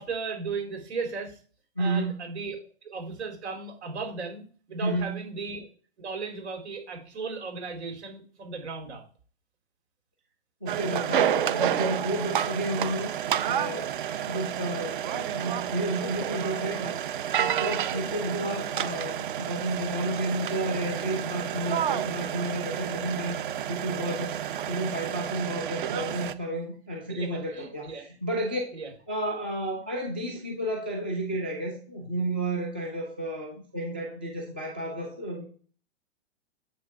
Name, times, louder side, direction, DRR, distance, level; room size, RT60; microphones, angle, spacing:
voice 1, 0.0-1.4 1.8-2.6 2.8-5.7 6.0-9.0 27.1-28.0 28.7-28.9, right 4 dB, 85° right, 3 dB, 4.1 m, -36 dB
voice 2, 1.8-2.2 4.8-5.2 10.6-13.1 13.5-14.0 14.3-16.9 17.4-23.4 23.7-24.4 24.7-28.6 29.1-35.4, right 1 dB, 10° right, 0 dB, 0.3 m, -31 dB
sound 1, 10.7-26.3, right 10 dB, 50° right, 0.6 m, -30 dB
7.7 x 6.2 x 5.0 m, 0.42 s
hypercardioid pair, 175°, 33 cm